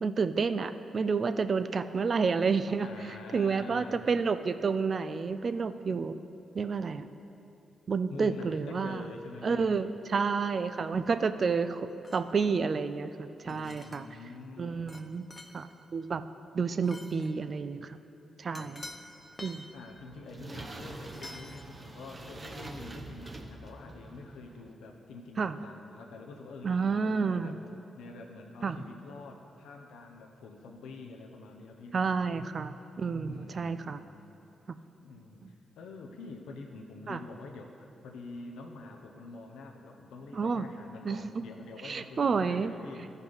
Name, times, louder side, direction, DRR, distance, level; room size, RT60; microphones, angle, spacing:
voice 1, 0.0-6.2 6.5-7.1 7.9-9.0 9.4-14.1 14.6-15.2 15.5-16.2 16.5-18.0 18.4-18.9 19.4-19.7 25.4-25.6 26.6-27.5 28.6-28.8 31.9-34.0 34.7-34.8 35.4-35.5 37.1-37.2 40.3-40.7 41.0-41.3 41.8-42.7, right 5 dB, 50° right, 11 dB, 0.4 m, -30 dB
voice 2, 2.8-4.1 8.1-9.8 12.1-12.2 13.4-14.9 18.5-18.8 19.7-27.6 28.0-32.1 33.2-34.2 35.0-35.4 35.8-43.1, left 3 dB, 85° left, 2 dB, 0.8 m, -46 dB
sound 1, 12.0-12.4 13.5-14.1 14.9-15.0 15.3-15.6 16.8-17.3 18.5-19.0 19.3-19.7 21.0-21.7 22.5-22.7, left 2 dB, 30° left, 0.9 m, -48 dB
sound 2, 19.8-24.7, right 2 dB, 35° right, 0.9 m, -45 dB
14.5 x 5.4 x 4.0 m, 2.8 s
supercardioid pair, 60°, 0 cm